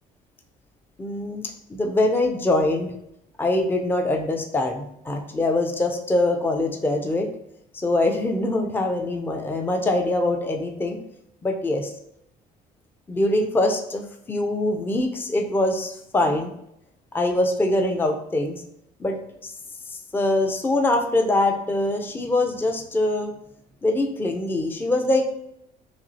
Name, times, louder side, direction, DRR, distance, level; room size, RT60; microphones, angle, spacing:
voice 1, 1.0-1.4 1.7-2.9 3.4-7.3 7.7-11.0 11.4-11.9 13.1-16.5 17.1-18.6 19.0-19.5 20.1-23.3 23.8-25.3, left 2 dB, 10° left, 4 dB, 0.5 m, -23 dB
5.8 x 2.4 x 2.7 m, 0.76 s
cardioid pair, 110°, 17 cm